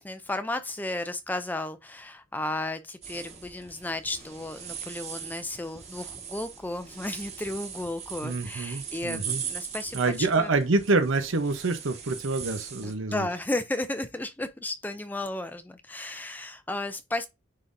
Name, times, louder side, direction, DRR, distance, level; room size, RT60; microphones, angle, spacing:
voice 1, 0.0-10.5 12.8-17.3, left 2 dB, 10° left, 0.4 m, -34 dB
sound 1, 3.0-12.9, right 7 dB, 35° right, 1.6 m, -40 dB
voice 2, 8.2-9.4 9.9-13.3, right 3 dB, 90° right, 0.8 m, -26 dB
9.8 x 3.8 x 2.6 m
head